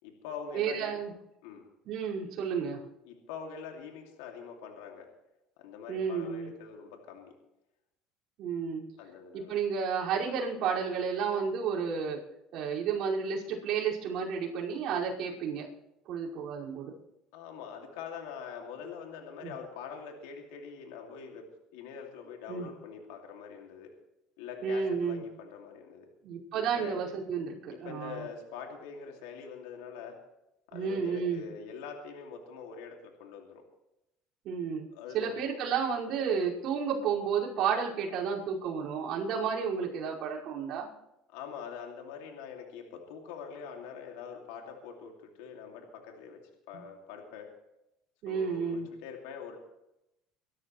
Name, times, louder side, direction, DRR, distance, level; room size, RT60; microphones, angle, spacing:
voice 1, 0.0-1.0 1.4-1.6 3.0-5.1 5.6-7.3 9.0-9.5 17.3-21.4 21.7-23.9 24.4-26.1 26.5-27.0 27.7-30.2 30.7-33.6 34.9-35.5 41.3-46.4 46.7-47.5 48.3-49.6, left 6 dB, 90° left, 2 dB, 2.5 m, -44 dB
voice 2, 0.5-1.1 1.9-2.8 5.9-6.5 8.4-8.8 9.3-12.2 12.5-15.7 16.1-16.9 19.4-19.5 22.5-22.7 24.6-25.2 26.2-28.2 30.7-31.4 34.4-34.9 35.1-40.9 46.7-46.8 48.2-48.9, right 6 dB, 60° right, -5 dB, 5.3 m, -31 dB
24.0 x 13.0 x 3.2 m, 0.87 s
supercardioid pair, 105°, 0 cm